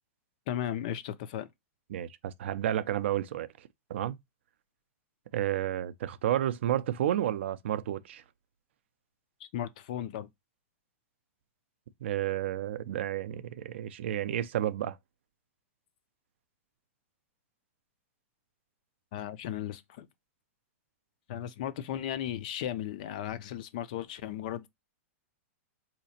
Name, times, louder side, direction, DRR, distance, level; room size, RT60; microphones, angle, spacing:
voice 1, 0.5-1.5 9.5-10.3 19.1-20.1 21.3-24.7, left 11 dB, 30° left, 0.3 m, -35 dB
voice 2, 1.9-4.2 5.3-8.2 12.0-15.0, right 11 dB, 50° right, 0.4 m, -31 dB
4.1 x 2.8 x 2.7 m
supercardioid pair, 175°, 8 cm